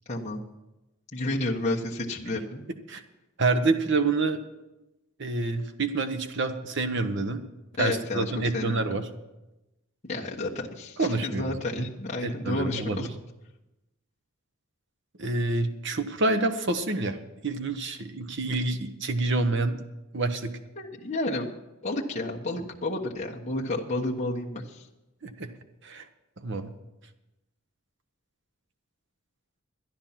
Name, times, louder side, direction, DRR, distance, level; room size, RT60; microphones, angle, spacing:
voice 1, 0.1-0.4 1.1-2.6 7.8-9.0 10.0-13.1 20.8-24.9, left 2 dB, 30° left, -3 dB, 1.2 m, -31 dB
voice 2, 3.4-4.4 5.2-7.4 7.8-9.0 11.0-11.6 12.2-13.1 15.2-17.2 17.4-19.8 20.1-20.5 25.2-25.5 25.8-26.0 26.4-26.7, right 3 dB, 55° right, 8 dB, 1.0 m, -27 dB
12.5 x 10.5 x 5.8 m, 0.99 s
head